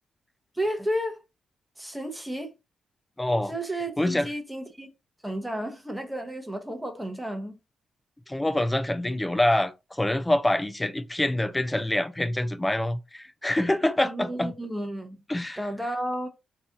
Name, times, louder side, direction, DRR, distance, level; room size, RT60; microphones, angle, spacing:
voice 1, 0.5-1.2 1.8-2.5 3.5-4.9 5.2-7.6 14.0-15.2 15.6-16.3, right 1 dB, 5° right, 0.8 m, -32 dB
voice 2, 3.2-3.5 4.0-4.3 8.3-14.5 15.3-15.6, left 1 dB, 10° left, 0.4 m, -26 dB
4.0 x 2.8 x 2.4 m
cardioid pair, 100°, 0 cm